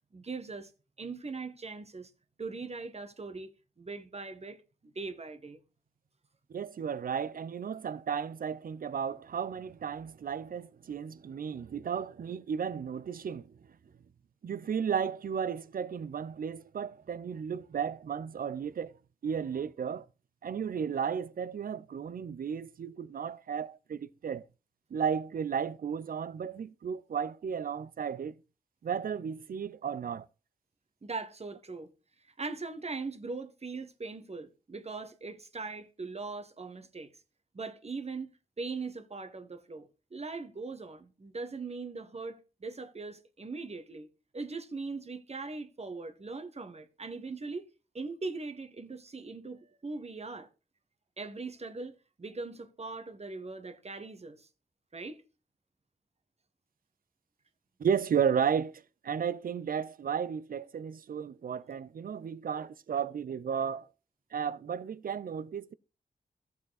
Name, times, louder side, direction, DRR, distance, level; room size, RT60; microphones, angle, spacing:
voice 1, 0.1-0.7 1.0-2.1 2.4-5.6 31.0-31.9 32.4-37.1 37.5-44.1 44.3-47.6 47.9-50.5 51.2-54.5 54.9-55.2, right 3 dB, 45° right, 1.4 m, -40 dB
voice 2, 6.5-13.5 14.4-18.9 19.2-20.1 20.4-24.4 24.9-28.3 28.8-30.3 57.8-63.9 64.3-65.7, right 7 dB, 65° right, 0.6 m, -34 dB
12.5 x 7.3 x 4.1 m
cardioid pair, 55°, 16 cm